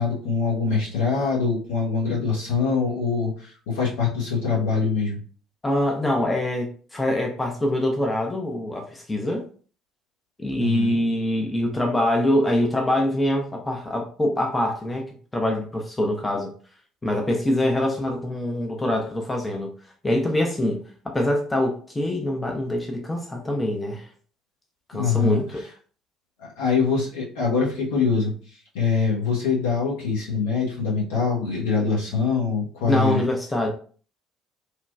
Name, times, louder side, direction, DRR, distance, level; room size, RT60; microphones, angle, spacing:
voice 1, 0.0-5.2 10.6-11.0 24.9-25.4 26.6-28.3 28.7-33.2, left 5 dB, 65° left, -4 dB, 1.0 m, -24 dB
voice 2, 5.6-9.5 10.4-16.5 17.0-19.7 20.0-24.1 24.9-25.6 32.9-33.7, left 1 dB, 15° left, 1 dB, 0.5 m, -24 dB
3.1 x 2.2 x 2.2 m, 0.42 s
figure-of-eight pair, 55°, 0 cm